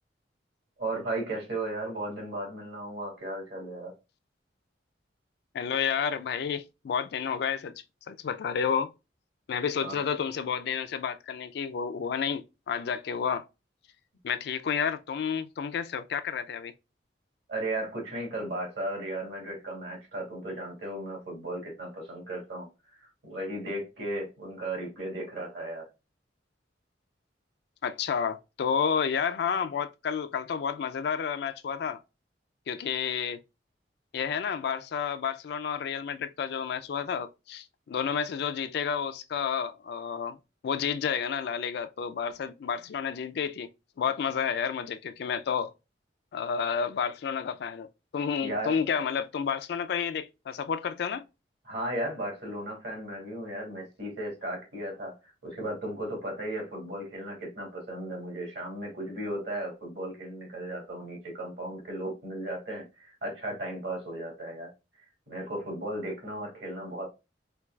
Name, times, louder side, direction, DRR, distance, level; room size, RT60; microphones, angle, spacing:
voice 1, 0.8-3.9 9.8-10.0 17.5-22.7 23.0-25.9 48.4-48.7 51.6-55.2 55.4-64.7 65.3-67.1, right 1 dB, 65° right, 2.1 m, -35 dB
voice 2, 5.5-7.7 8.1-8.9 9.5-13.5 14.2-16.7 27.8-32.0 32.7-33.4 34.1-40.4 40.6-43.7 44.0-45.7 46.3-47.9 48.1-51.3, left 7 dB, 65° left, 0.3 m, -30 dB
4.4 x 2.3 x 2.2 m
head